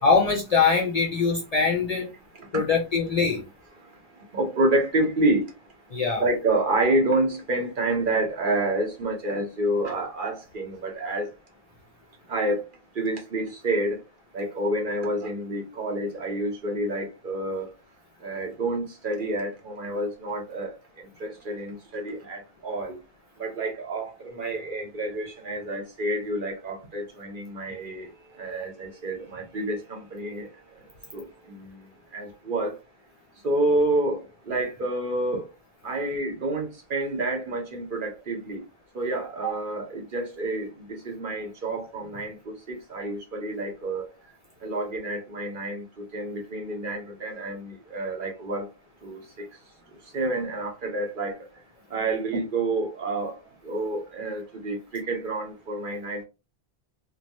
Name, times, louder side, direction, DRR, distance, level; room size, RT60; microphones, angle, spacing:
voice 1, 0.0-2.1 2.5-3.4 5.9-6.2, left 5 dB, 50° left, 0.5 m, -22 dB
voice 2, 4.3-5.5 6.2-11.3 12.3-12.6 13.0-14.0 14.3-17.7 18.2-20.7 21.2-22.9 23.4-28.1 28.4-30.5 31.1-31.8 32.1-32.7 33.4-35.4 35.8-38.6 38.9-40.7 41.0-44.1 44.6-48.7 49.0-49.5 50.1-51.3 51.9-53.3 53.6-56.2, right 2 dB, 55° right, 1.0 m, -28 dB
3.0 x 2.2 x 2.5 m
omnidirectional pair, 1.1 m